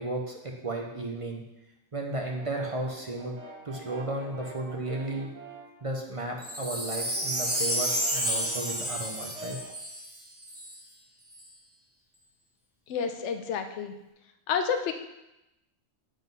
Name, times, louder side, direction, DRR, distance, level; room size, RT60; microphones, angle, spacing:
voice 1, 0.0-1.4 1.9-3.4 3.6-5.3 5.8-9.6, right 2 dB, 35° right, 1 dB, 0.6 m, -34 dB
Brass instrument, 2.3-5.8 6.2-9.8, right 2 dB, 60° right, 1.3 m, -46 dB
Wind chime, 6.4-10.8 11.3-11.4, equal, 10° right, 0.9 m, -31 dB
voice 2, 12.9-13.9 14.5-14.9, left 6 dB, 65° left, 6 dB, 0.9 m, -29 dB
7.8 x 3.8 x 5.3 m, 0.92 s
omnidirectional pair, 1.4 m